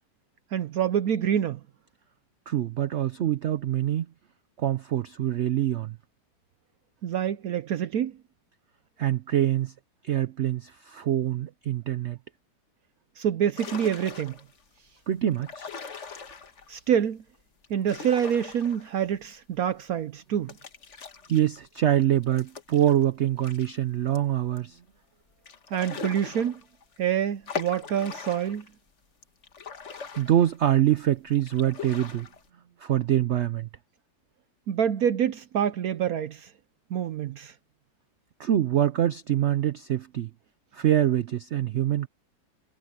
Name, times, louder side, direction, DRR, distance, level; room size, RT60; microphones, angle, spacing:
voice 1, 0.5-1.6 7.0-8.2 13.2-14.4 16.7-17.2 17.7-20.5 25.7-26.6 27.0-28.7 34.7-36.5 36.9-37.5, right 9 dB, 65° right, 1.0 m, -26 dB
voice 2, 2.5-4.1 4.6-6.0 9.0-9.7 10.0-12.2 15.1-15.7 21.3-24.8 30.2-32.3 32.8-33.7 38.4-40.3 40.7-42.1, right 11 dB, 85° right, 0.6 m, -25 dB
sound 1, 13.6-14.6 15.3-16.8 17.6-19.2 19.6-19.7 20.5-23.7 24.2-24.3 24.6-24.7 25.5-27.0 27.5-28.7 29.2-30.9 31.3-32.5, left 5 dB, 45° left, 1.6 m, -40 dB
omnidirectional pair, 1.9 m